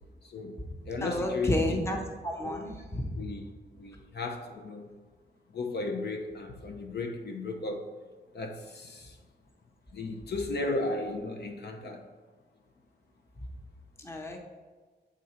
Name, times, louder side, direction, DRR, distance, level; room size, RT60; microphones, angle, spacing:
voice 1, 0.2-0.6 0.8-2.0 2.4-2.6 3.2-4.9 5.5-7.9 8.3-9.2 9.9-12.0, left 2 dB, 70° left, 3 dB, 0.8 m, -35 dB
voice 2, 1.0-2.0 2.2-3.1 14.0-14.4, left 1 dB, 15° left, 1 dB, 0.7 m, -31 dB
8.1 x 3.8 x 4.3 m, 1.4 s
wide cardioid pair, 150°, 17 cm